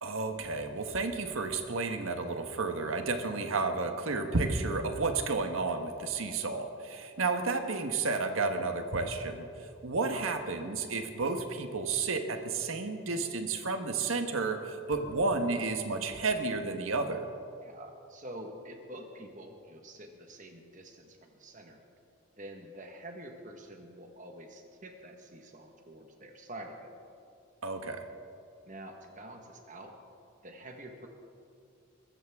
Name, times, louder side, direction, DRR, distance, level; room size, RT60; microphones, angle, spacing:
voice 1, 0.0-17.2 27.6-28.1, right 3 dB, 85° right, 6 dB, 1.3 m, -32 dB
voice 2, 17.6-21.8 22.4-26.9 28.6-29.9 30.4-31.1, right 1 dB, 40° right, 4 dB, 1.3 m, -47 dB
22.5 x 14.5 x 3.6 m, 2.5 s
head